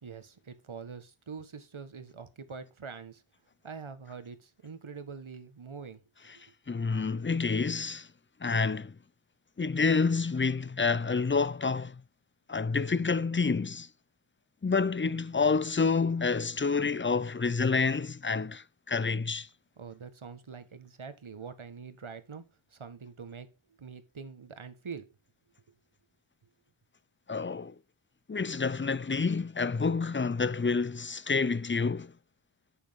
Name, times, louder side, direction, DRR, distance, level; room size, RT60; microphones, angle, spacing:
voice 1, 0.0-3.2 3.6-6.0 19.8-23.5 23.8-25.1, right 5 dB, 70° right, 1.7 m, -44 dB
voice 2, 6.7-8.1 8.4-9.0 9.6-12.0 12.5-13.9 14.6-19.5 27.3-27.7 28.3-32.1, left 4 dB, 25° left, 0.6 m, -28 dB
9.5 x 6.8 x 3.7 m
wide cardioid pair, 40°, 49 cm